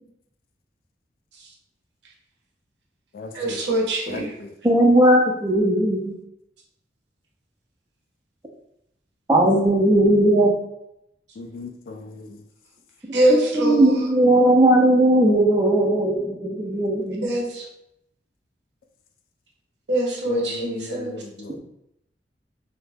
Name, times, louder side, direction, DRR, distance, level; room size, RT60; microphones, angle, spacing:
voice 1, 3.3-4.3 13.1-14.1 17.2-17.7 19.9-21.2, right 1 dB, 75° right, -1 dB, 0.7 m, -23 dB
voice 2, 4.6-6.1 9.3-10.5 13.3-17.3, right 1 dB, 20° right, 0 dB, 0.4 m, -18 dB
voice 3, 11.4-12.3 20.3-21.5, left 2 dB, 55° left, 5 dB, 0.3 m, -34 dB
2.2 x 2.0 x 3.2 m, 0.80 s
head